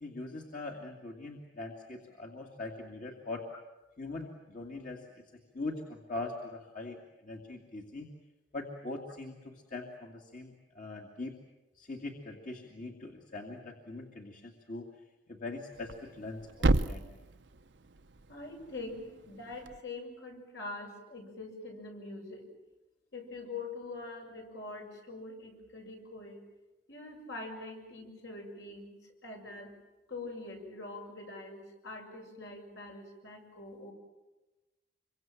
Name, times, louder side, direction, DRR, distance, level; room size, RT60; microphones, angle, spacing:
voice 1, 0.0-3.4 4.0-5.0 5.5-7.0 7.2-8.1 8.5-11.4 11.8-14.9 15.3-17.0, left 2 dB, 45° left, 0 dB, 2.3 m, -42 dB
Thump thud, 15.7-19.8, right 2 dB, 70° right, 0.8 m, -34 dB
voice 2, 18.3-22.5 23.1-26.4 26.9-29.0 29.2-29.7 30.1-33.9, left 2 dB, 70° left, 1 dB, 7.0 m, -44 dB
26.5 x 24.0 x 7.5 m, 1.1 s
head